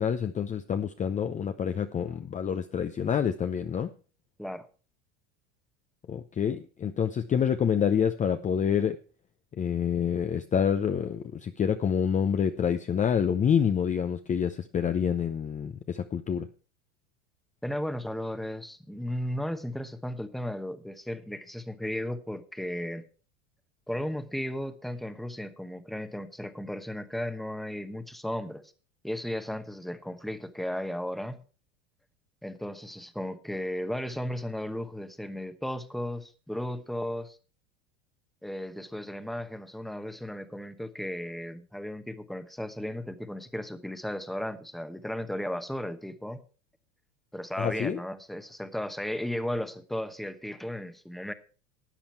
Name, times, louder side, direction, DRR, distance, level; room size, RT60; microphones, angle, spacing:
voice 1, 0.0-3.9 6.1-9.0 9.6-16.5 47.6-48.0, left 7 dB, 20° left, 9 dB, 0.6 m, -27 dB
voice 2, 17.6-23.0 23.9-28.6 29.0-31.4 32.4-37.4 38.4-46.4 47.3-51.3, left 1 dB, ahead, 11 dB, 1.0 m, -35 dB
13.5 x 8.8 x 4.5 m, 0.37 s
supercardioid pair, 105°, 35 cm